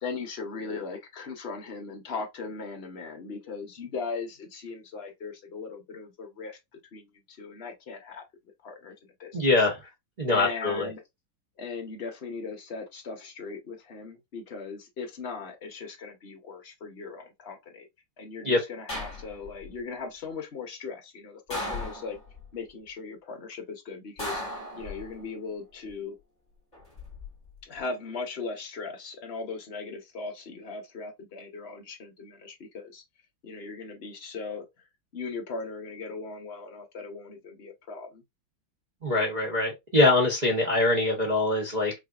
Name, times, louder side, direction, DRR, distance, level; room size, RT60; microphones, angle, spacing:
voice 1, 0.0-6.6 6.9-8.2 8.6-9.3 10.3-11.0 11.6-17.9 18.2-22.2 22.5-26.2 27.6-33.0 33.4-34.6 35.1-38.2, left 4 dB, 45° left, 0.9 m, -38 dB
voice 2, 9.3-9.8 10.2-10.9 18.4-18.6 39.0-41.9, left 2 dB, 40° right, 0.6 m, -23 dB
sound 1, 18.9-19.7 21.5-22.4 24.2-25.3 26.7-27.3, left 2 dB, 15° left, 1.7 m, -36 dB
4.9 x 2.8 x 2.4 m
omnidirectional pair, 2.2 m